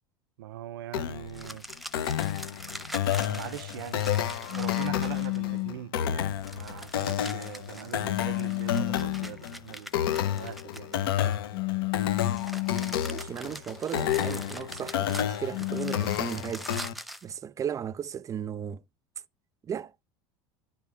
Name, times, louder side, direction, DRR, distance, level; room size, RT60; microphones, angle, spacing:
voice 1, 0.4-1.7 3.3-4.1 4.5-11.4, right 13 dB, 85° right, 0.5 m, -42 dB
sound 1, 0.9-16.9, left 10 dB, 85° left, 0.8 m, -31 dB
sound 2, 1.3-5.6 6.4-11.3 12.1-17.3, equal, ahead, 0.8 m, -44 dB
sound 3, 4.5-5.8 8.0-9.4 11.5-13.1 15.5-16.2, left 27 dB, 60° left, 0.7 m, -31 dB
voice 2, 13.1-16.7 17.2-18.8 19.6-19.9, right 8 dB, 30° right, 0.4 m, -35 dB
10.5 x 3.5 x 4.8 m
supercardioid pair, 95°, 12 cm